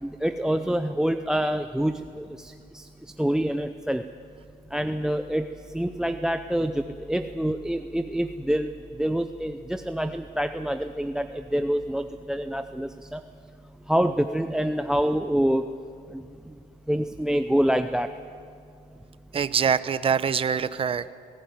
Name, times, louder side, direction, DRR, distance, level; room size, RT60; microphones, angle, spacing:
voice 1, 0.0-2.9 3.2-4.1 4.7-8.7 9.0-13.2 13.9-15.8 16.1-16.3 16.9-18.2, equal, 5° right, 10 dB, 0.6 m, -26 dB
voice 2, 19.3-21.1, right 7 dB, 35° right, 15 dB, 0.8 m, -24 dB
20.0 x 17.5 x 9.3 m, 2.4 s
cardioid pair, 110°, 17 cm